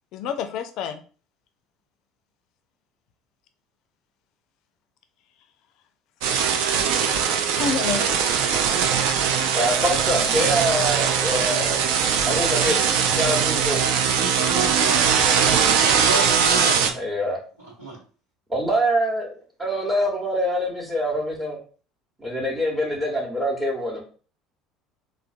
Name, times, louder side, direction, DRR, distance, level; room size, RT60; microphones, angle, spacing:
voice 1, 0.1-1.0 7.6-8.9, left 6 dB, 60° left, 8 dB, 0.4 m, -29 dB
Ugly sounding guitar effects, 6.2-16.9, right 7 dB, 65° right, 0.3 m, -21 dB
voice 2, 9.5-11.8 12.2-13.9 16.9-17.4 18.5-19.3 19.6-21.6 22.2-24.0, equal, 20° right, -4 dB, 0.9 m, -25 dB
voice 3, 13.5-15.2 15.8-17.0 17.6-18.0, right 3 dB, 90° right, -9 dB, 0.8 m, -31 dB
3.7 x 2.1 x 2.4 m, 0.39 s
hypercardioid pair, 65°, 0 cm